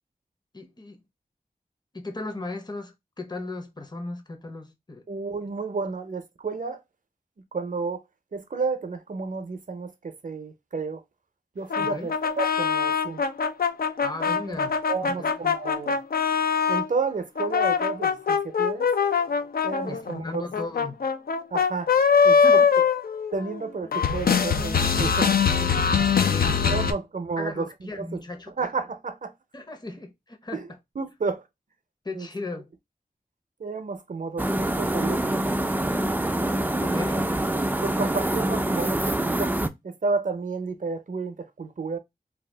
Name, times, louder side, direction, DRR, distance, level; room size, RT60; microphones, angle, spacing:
voice 1, 0.5-1.0 1.9-5.1 11.8-12.1 14.0-14.7 15.0-15.4 19.9-21.0 22.3-22.7 25.6-25.8 26.3-26.9 27.4-28.5 29.5-30.8 32.0-32.7 36.8-37.2 38.0-38.2, left 2 dB, 25° left, 0.7 m, -37 dB
voice 2, 5.1-6.8 7.5-8.0 8.3-11.0 11.6-13.2 14.3-14.6 14.9-16.0 16.7-18.9 19.6-20.4 21.5-21.9 22.2-22.6 23.3-25.3 26.6-28.2 28.6-29.3 30.5-30.7 31.0-31.4 32.1-32.3 33.6-35.4 36.9-39.5 39.8-42.0, right 4 dB, 55° right, 0.6 m, -31 dB
sound 1, 11.7-16.9 17.3-23.6 23.9-26.9, left 6 dB, 70° left, 0.4 m, -23 dB
sound 2, 34.4-39.7, right 1 dB, 10° right, 0.3 m, -25 dB
2.7 x 2.3 x 3.3 m
wide cardioid pair, 55°, 16 cm